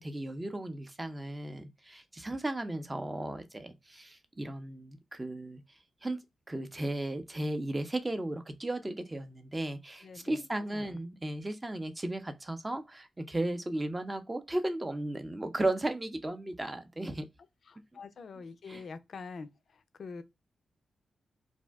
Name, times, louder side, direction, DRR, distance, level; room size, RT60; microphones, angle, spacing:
voice 1, 0.0-5.6 6.0-6.2 6.5-17.3 17.9-18.0 18.4-18.9, right 1 dB, 25° right, 0.6 m, -35 dB
voice 2, 10.0-10.5 10.7-11.0 17.9-19.5 20.0-20.2, left 4 dB, 65° left, 0.4 m, -44 dB
2.6 x 2.0 x 3.4 m
supercardioid pair, 40°, 0 cm